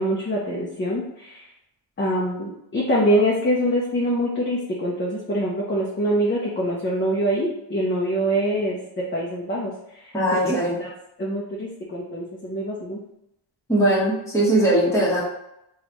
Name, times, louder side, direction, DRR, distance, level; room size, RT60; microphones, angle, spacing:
voice 1, 0.0-1.5 2.0-10.1 10.8-10.9 11.2-13.0, equal, 25° left, -4 dB, 0.6 m, -24 dB
voice 2, 10.1-10.7 13.7-15.2, right 1 dB, 5° left, -7 dB, 1.3 m, -20 dB
3.1 x 2.4 x 3.9 m, 0.81 s
cardioid pair, 110°, 47 cm